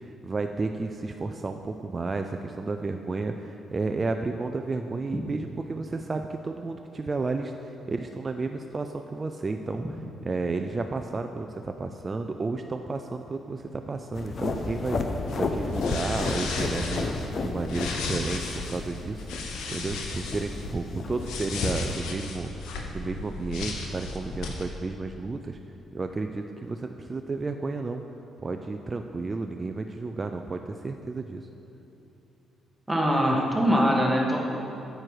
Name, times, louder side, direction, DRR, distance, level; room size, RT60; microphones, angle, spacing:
voice 1, 0.0-17.1 17.4-19.3 19.7-25.6 25.9-28.0 28.4-31.5, right 3 dB, 30° right, 5 dB, 0.4 m, -32 dB
sound 1, 14.1-22.2, left 3 dB, 45° left, 0.7 m, -33 dB
sound 2, 15.3-24.6, left 3 dB, 90° left, 1.0 m, -35 dB
voice 2, 32.9-34.4, equal, 5° right, -3 dB, 1.8 m, -22 dB
9.5 x 7.7 x 4.9 m, 2.9 s
cardioid pair, 90°, 0 cm